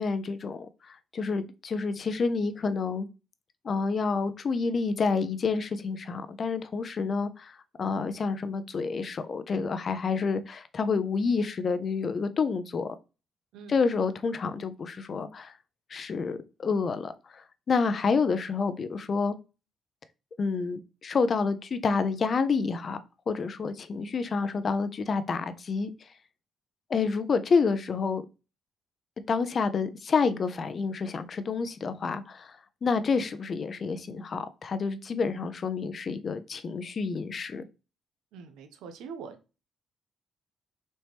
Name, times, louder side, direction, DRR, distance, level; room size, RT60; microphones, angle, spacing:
voice 1, 0.0-3.1 3.6-12.9 13.7-15.5 15.9-19.3 20.4-23.0 23.3-26.1 26.9-28.2 29.3-37.7, left 4 dB, 45° left, 0.5 m, -29 dB
voice 2, 38.3-39.6, right 5 dB, 85° right, 0.6 m, -44 dB
4.2 x 3.0 x 3.4 m
cardioid pair, 90°, 0 cm